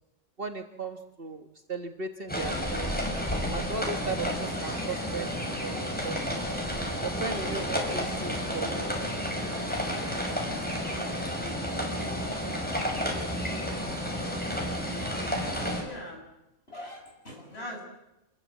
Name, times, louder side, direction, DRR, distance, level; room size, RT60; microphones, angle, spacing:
voice 1, 0.4-2.9 3.5-5.3 5.6-6.2 7.0-8.9, right 4 dB, 50° right, 5 dB, 1.6 m, -36 dB
sound 1, 2.3-15.8, equal, 5° left, 6.2 m, -31 dB
voice 2, 15.7-16.2 16.7-17.8, left 1 dB, 55° left, 1 dB, 7.7 m, -41 dB
27.5 x 21.0 x 8.3 m, 0.92 s
omnidirectional pair, 1.2 m